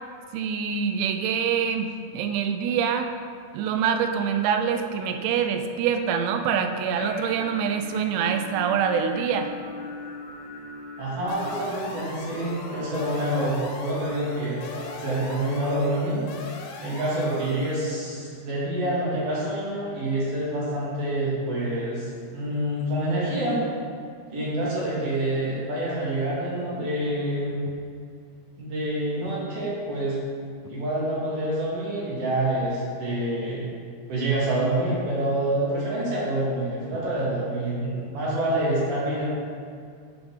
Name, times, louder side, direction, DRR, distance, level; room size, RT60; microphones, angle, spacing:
voice 1, 0.3-3.1 3.5-9.5, right 7 dB, 85° right, 6 dB, 2.9 m, -25 dB
sound 1, 6.9-15.8, left 2 dB, 65° left, 2.2 m, -39 dB
voice 2, 11.0-14.7 15.0-16.2 16.8-23.6 24.3-27.6 28.6-30.2 30.7-33.7 34.1-39.3, right 1 dB, 60° right, -7 dB, 2.4 m, -27 dB
sound 2, 11.3-17.9, left 3 dB, 80° left, 3.1 m, -41 dB
10.0 x 5.2 x 3.5 m, 2.2 s
omnidirectional pair, 5.6 m